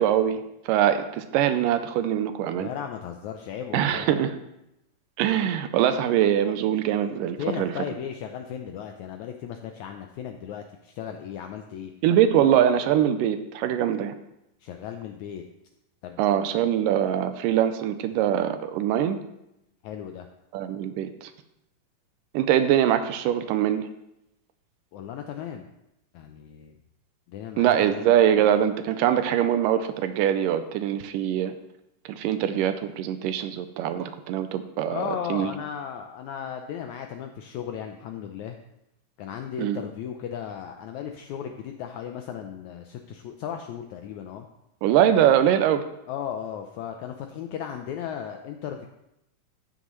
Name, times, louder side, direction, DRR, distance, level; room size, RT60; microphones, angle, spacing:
voice 1, 0.0-2.7 3.7-4.4 5.2-7.7 12.0-14.2 16.2-19.2 20.5-21.3 22.3-23.9 27.6-31.5 32.1-35.0 35.3-35.5 39.6-39.8 44.8-45.8, right 10 dB, 80° right, 10 dB, 2.1 m, -23 dB
voice 2, 2.5-4.0 7.4-11.9 14.6-15.4 16.0-16.2 19.8-20.3 24.9-25.7 26.1-26.8 27.3-28.1 34.9-38.6 39.2-44.5 46.1-48.9, left 8 dB, 80° left, 5 dB, 1.7 m, -36 dB
13.0 x 9.3 x 3.1 m, 0.85 s
omnidirectional pair, 4.0 m